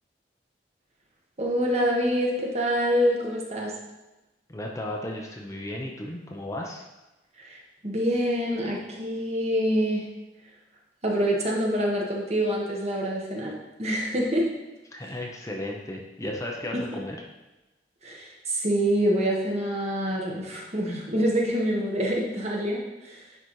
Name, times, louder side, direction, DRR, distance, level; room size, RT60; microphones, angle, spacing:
voice 1, 1.4-3.7 7.4-7.6 7.8-10.1 11.0-13.5 13.8-14.5 16.7-17.0 18.0-23.2, equal, 40° right, -2 dB, 1.2 m, -26 dB
voice 2, 4.5-6.8 14.9-17.2, left 1 dB, 20° left, 0 dB, 0.6 m, -34 dB
10.0 x 4.0 x 3.1 m, 1.0 s
head